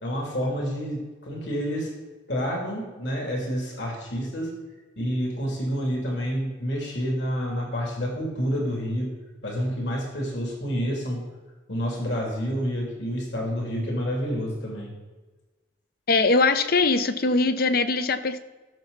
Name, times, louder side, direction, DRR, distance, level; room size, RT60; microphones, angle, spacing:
voice 1, 0.0-1.9 2.3-4.5 5.0-9.1 9.4-11.2 11.7-14.9, equal, 70° left, -1 dB, 2.9 m, -28 dB
voice 2, 16.1-18.4, left 3 dB, 55° left, 10 dB, 0.7 m, -21 dB
16.0 x 7.0 x 4.0 m, 1.2 s
head